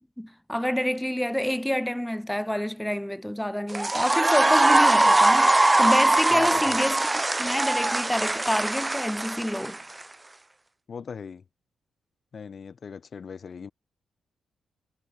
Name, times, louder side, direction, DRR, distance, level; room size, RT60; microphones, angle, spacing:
voice 1, 0.2-9.8, equal, 5° left, 3.6 m, -28 dB
sound 1, 3.7-10.0, right 2 dB, 20° right, 1.1 m, -21 dB
voice 2, 6.3-6.8 10.9-11.4 12.3-13.7, left 6 dB, 55° left, 2.5 m, -37 dB
supercardioid pair, 55°, 0 cm